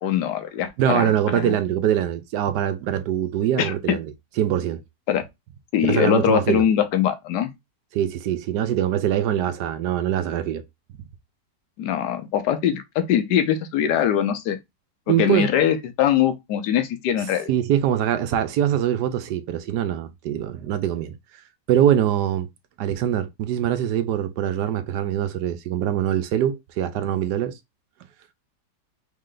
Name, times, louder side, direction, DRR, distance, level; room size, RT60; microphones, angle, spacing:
voice 1, 0.0-1.5 3.6-4.0 5.1-5.2 5.7-7.5 11.8-14.6 15.1-17.5, left 9 dB, 80° left, 1.3 m, -22 dB
voice 2, 0.8-4.1 4.4-4.8 5.9-6.6 7.9-10.6 15.1-15.5 17.5-21.2 21.7-22.5 22.8-27.5, right 10 dB, 80° right, 1.2 m, -23 dB
3.7 x 3.2 x 3.8 m
omnidirectional pair, 1.8 m